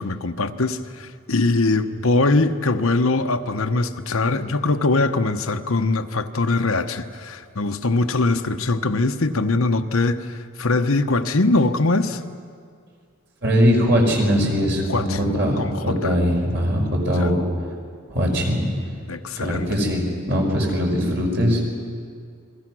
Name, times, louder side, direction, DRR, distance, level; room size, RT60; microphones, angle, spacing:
voice 1, 0.0-12.2 14.9-16.1 17.2-17.3 19.1-19.7, left 2 dB, 85° left, 7 dB, 1.1 m, -22 dB
voice 2, 13.4-17.4 18.1-18.9 19.4-21.6, equal, 55° right, 0 dB, 5.4 m, -21 dB
29.5 x 22.5 x 6.3 m, 2.2 s
head